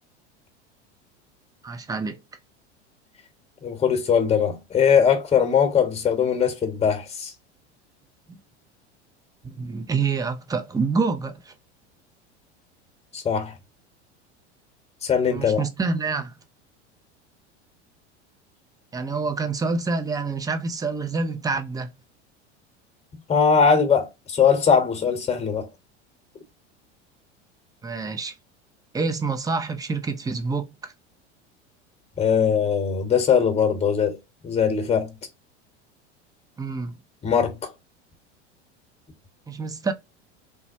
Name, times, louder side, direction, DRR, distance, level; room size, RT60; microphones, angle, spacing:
voice 1, 1.6-2.2 8.3-8.4 9.4-11.5 15.3-16.3 18.9-21.9 27.8-28.3 28.9-30.9 36.6-37.0 39.5-39.9, right 4 dB, 10° right, 0.5 m, -27 dB
voice 2, 3.6-7.3 13.1-13.5 15.0-15.6 23.3-25.7 32.2-34.2 34.4-35.1 37.2-37.7, left 7 dB, 20° left, 1.0 m, -21 dB
3.3 x 2.1 x 2.6 m
hypercardioid pair, 90°, 35 cm